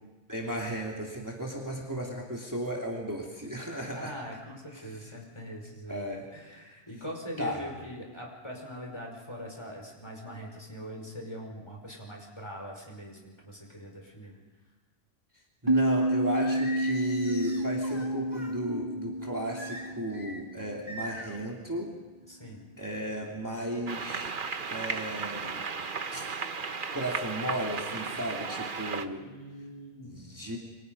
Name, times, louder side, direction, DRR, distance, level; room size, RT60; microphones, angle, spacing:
voice 1, 0.3-4.2 4.7-5.2 5.9-6.3 6.5-6.7 7.4-7.6 15.6-22.0 22.8-24.4 24.6-25.7 26.1-26.3 26.9-29.3 30.0-30.6, right 1 dB, 15° right, -1 dB, 2.9 m, -35 dB
voice 2, 4.0-14.3 22.3-22.6 29.2-30.2, equal, 25° left, 0 dB, 5.4 m, -42 dB
sound 1, 15.7-21.0, right 1 dB, 35° right, 1.8 m, -29 dB
Singing, 16.4-18.6 19.6-20.4 20.9-21.4, equal, 55° left, 3.6 m, -42 dB
sound 2, 23.9-29.1, right 5 dB, 55° right, 1.2 m, -35 dB
29.0 x 24.5 x 5.5 m, 1.2 s
omnidirectional pair, 1.1 m